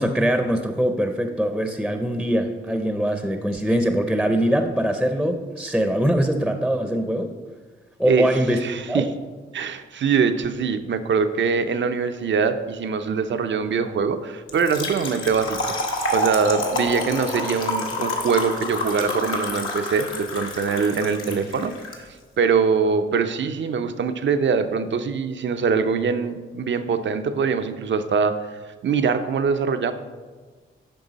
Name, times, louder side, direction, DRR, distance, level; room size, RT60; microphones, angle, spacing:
voice 1, 0.0-7.3 8.0-8.6 8.9-9.1, equal, ahead, 6 dB, 0.7 m, -22 dB
voice 2, 8.6-9.1 9.5-15.6 16.1-22.1 22.4-28.4 28.8-29.9, right 5 dB, 60° right, 9 dB, 0.7 m, -23 dB
Trickle dribble / Fill (with liquid), 14.5-22.0, left 1 dB, 75° left, 1.5 m, -28 dB
9.1 x 5.4 x 4.1 m, 1.4 s
cardioid pair, 60°, 21 cm